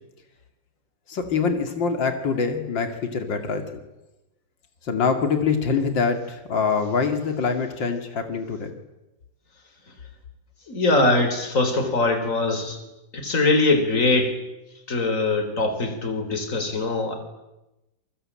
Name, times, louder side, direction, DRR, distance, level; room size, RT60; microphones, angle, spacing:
voice 1, 1.1-3.8 4.8-8.7, left 5 dB, 70° left, 6 dB, 3.1 m, -24 dB
voice 2, 10.7-12.8 13.1-14.3 14.9-17.2, left 2 dB, 40° left, 7 dB, 4.4 m, -22 dB
28.5 x 23.5 x 8.9 m, 0.97 s
omnidirectional pair, 2.1 m